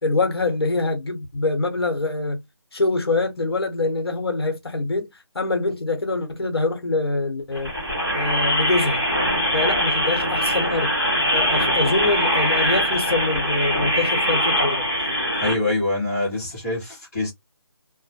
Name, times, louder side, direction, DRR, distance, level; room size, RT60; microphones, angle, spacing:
voice 1, 0.0-2.4 2.7-7.7 8.1-9.0 9.5-10.9 11.3-14.9, left 3 dB, 70° left, 1.0 m, -24 dB
sound 1, 7.5-15.5, equal, ahead, 0.3 m, -22 dB
voice 2, 15.4-17.3, left 2 dB, 25° left, 1.0 m, -24 dB
2.3 x 2.1 x 2.7 m
figure-of-eight pair, 170°, 13 cm